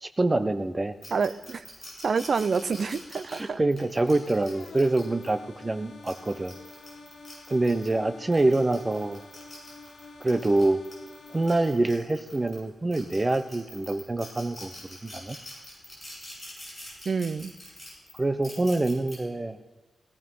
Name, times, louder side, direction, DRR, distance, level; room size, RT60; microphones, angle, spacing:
voice 1, 0.0-0.9 3.3-6.6 7.5-9.2 10.2-10.8 11.3-14.7 15.0-15.4 18.2-19.6, right 2 dB, 20° right, 9 dB, 0.8 m, -25 dB
sound 1, 1.0-5.3 5.9-7.9 8.3-12.6 12.9-19.2, left 1 dB, 15° left, 7.1 m, -45 dB
voice 2, 1.1-1.6 2.0-3.6 17.1-17.5, right 5 dB, 50° right, 13 dB, 0.6 m, -27 dB
sound 2, 4.0-11.7, left 3 dB, 90° left, 1.9 m, -48 dB
17.5 x 14.5 x 5.6 m, 1.2 s
wide cardioid pair, 145°, 0 cm